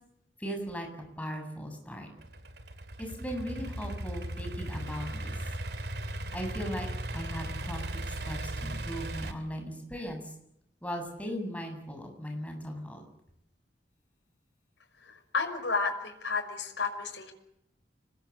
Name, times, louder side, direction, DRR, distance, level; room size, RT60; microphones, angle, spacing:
voice 1, 0.4-0.9 1.2-2.1 3.0-5.3 6.3-10.3 10.8-13.0, equal, 10° left, 3 dB, 7.8 m, -38 dB
Idling / Accelerating revving vroom, 2.2-9.3, right 1 dB, 65° right, 2.8 m, -37 dB
voice 2, 15.0-17.3, left 4 dB, 90° left, 2 dB, 6.0 m, -32 dB
28.5 x 21.0 x 8.4 m, 0.75 s
head